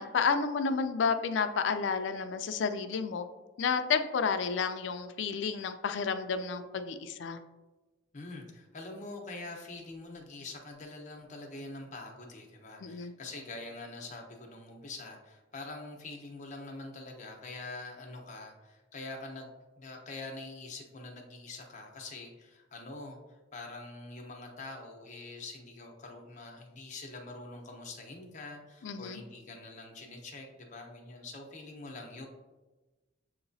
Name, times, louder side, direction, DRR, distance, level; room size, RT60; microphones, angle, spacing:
voice 1, 0.0-3.2 3.6-7.4 12.8-13.1 28.8-29.2, left 5 dB, 70° left, 9 dB, 0.4 m, -31 dB
voice 2, 8.1-19.5 19.8-23.2 23.5-32.3, left 2 dB, 40° left, 1 dB, 0.8 m, -45 dB
6.9 x 2.9 x 2.6 m, 1.2 s
head